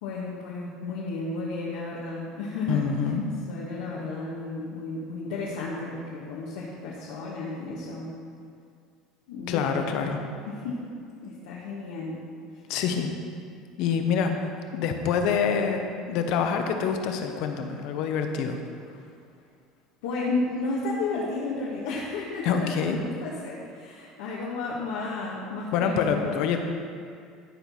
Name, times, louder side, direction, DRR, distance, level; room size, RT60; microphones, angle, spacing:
voice 1, 0.0-2.8 3.5-8.1 9.3-9.8 10.5-10.8 11.2-12.2 20.0-26.4, left 3 dB, 90° left, -6 dB, 1.5 m, -32 dB
voice 2, 2.7-3.3 9.5-10.2 12.7-13.1 13.8-14.3 14.7-18.6 22.4-23.0 25.7-26.6, left 6 dB, 65° left, 5 dB, 1.0 m, -26 dB
13.5 x 4.6 x 5.5 m, 2.3 s
supercardioid pair, 125°, 0 cm